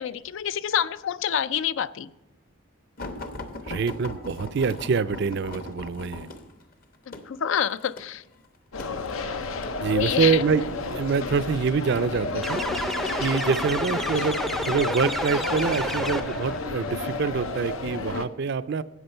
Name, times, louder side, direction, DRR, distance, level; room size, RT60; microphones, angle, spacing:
voice 1, 0.0-2.1 7.1-8.2 9.9-10.4, left 9 dB, 65° left, 0.4 m, -27 dB
sound 1, 3.0-9.8 10.5-11.0 11.9-12.6 13.3-13.5 13.9-14.0, left 2 dB, 45° left, 0.9 m, -39 dB
voice 2, 3.7-6.3 9.8-12.6 13.2-18.8, right 5 dB, 55° right, 0.4 m, -26 dB
sound 2, 8.7-18.3, left 3 dB, 80° left, 0.7 m, -32 dB
sound 3, 12.4-16.6, equal, ahead, 0.4 m, -30 dB
13.0 x 8.5 x 4.4 m
head